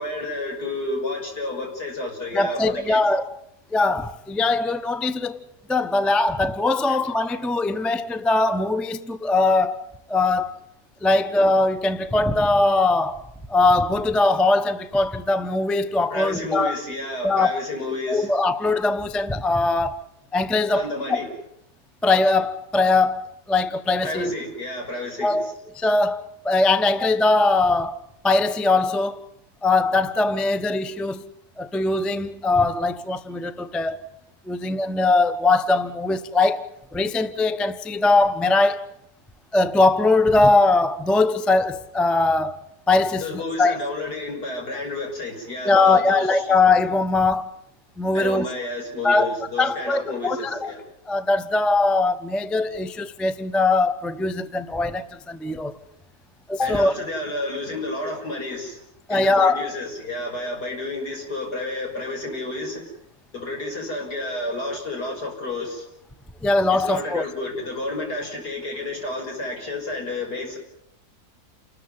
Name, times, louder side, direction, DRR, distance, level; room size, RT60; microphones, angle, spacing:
voice 1, 0.0-3.0 6.9-7.0 16.1-18.3 20.7-21.3 24.0-25.5 43.2-46.5 48.1-50.8 56.6-58.8 59.1-63.0 63.3-65.8 66.7-70.6, left 2 dB, 75° left, 6.4 m, -31 dB
voice 2, 2.3-3.4 3.7-5.4 5.7-10.6 11.0-13.2 13.5-16.8 17.2-17.6 18.1-20.0 20.3-21.3 22.0-24.3 25.2-28.0 28.2-29.2 29.6-31.3 31.6-34.0 34.5-38.9 39.5-42.6 42.9-43.8 45.6-47.5 48.0-48.5 49.0-50.7 51.1-55.8 56.5-56.9 59.1-59.7 66.4-67.3, left 3 dB, ahead, 0.5 m, -21 dB
29.0 x 13.5 x 9.5 m
omnidirectional pair, 1.7 m